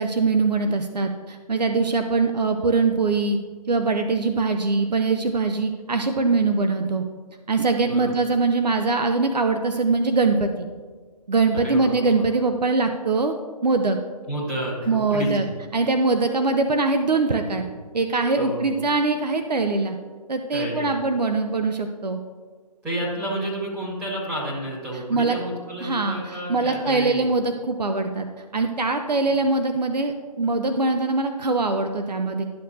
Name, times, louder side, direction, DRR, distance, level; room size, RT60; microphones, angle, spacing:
voice 1, 0.0-3.4 3.7-7.0 7.5-10.7 11.3-13.3 13.6-14.0 14.9-15.5 15.7-17.7 17.9-20.0 20.3-22.2 25.1-25.4 25.8-28.3 28.5-32.4, right 3 dB, 80° right, 6 dB, 0.7 m, -22 dB
voice 2, 7.8-8.1 11.5-12.2 14.3-15.5 18.4-18.7 20.5-21.0 22.8-27.3, right 1 dB, 10° right, -8 dB, 2.0 m, -30 dB
12.0 x 6.7 x 2.7 m, 1.5 s
figure-of-eight pair, 145°, 21 cm